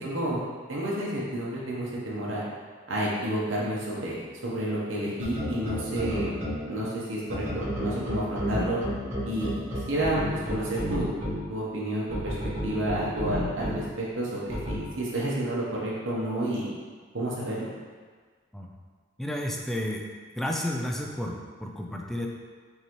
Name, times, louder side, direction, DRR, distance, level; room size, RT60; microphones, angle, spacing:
voice 1, 0.0-0.4 0.7-2.4 2.9-6.3 6.6-8.8 9.2-11.2 11.5-12.3 12.6-16.7 17.1-17.7, right 1 dB, 70° right, -6 dB, 0.9 m, -30 dB
sound 1, 5.2-6.5 7.3-11.3 12.1-13.7 14.5-14.8, equal, 35° right, 1.2 m, -30 dB
voice 2, 19.2-20.0 20.4-22.3, left 1 dB, ahead, 0 dB, 0.4 m, -31 dB
5.4 x 2.8 x 3.0 m, 1.6 s
head